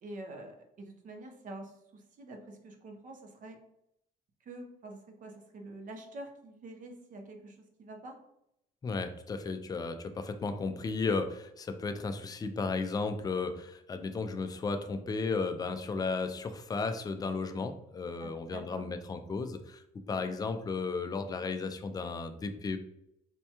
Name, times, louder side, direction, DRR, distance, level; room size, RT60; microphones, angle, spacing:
voice 1, 0.0-3.6 4.4-8.2 18.2-18.9 20.1-20.4, right 2 dB, 50° right, 4 dB, 0.7 m, -47 dB
voice 2, 8.8-22.8, left 4 dB, 20° left, 8 dB, 0.4 m, -34 dB
4.3 x 2.2 x 2.8 m, 0.79 s
cardioid pair, 110°, 17 cm